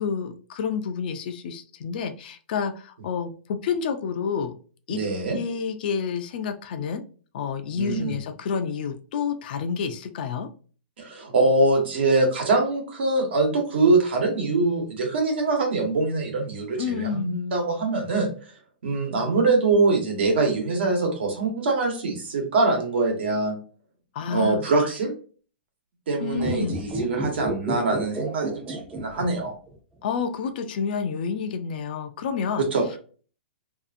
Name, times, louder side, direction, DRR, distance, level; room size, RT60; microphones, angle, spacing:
voice 1, 0.0-4.5 4.9-5.0 5.3-7.0 7.3-10.5 16.8-17.3 24.1-24.7 26.2-26.8 30.0-32.7, left 6 dB, 50° left, 8 dB, 0.4 m, -29 dB
voice 2, 4.9-5.4 7.8-8.2 11.0-18.3 18.8-23.5 24.3-25.1 26.1-29.5 32.7-32.8, right 3 dB, 70° right, 2 dB, 1.1 m, -23 dB
sound 1, 26.3-29.7 30.0-30.1, right 1 dB, 10° right, 0.5 m, -31 dB
2.6 x 2.4 x 2.4 m, 0.40 s
hypercardioid pair, 150°, 6 cm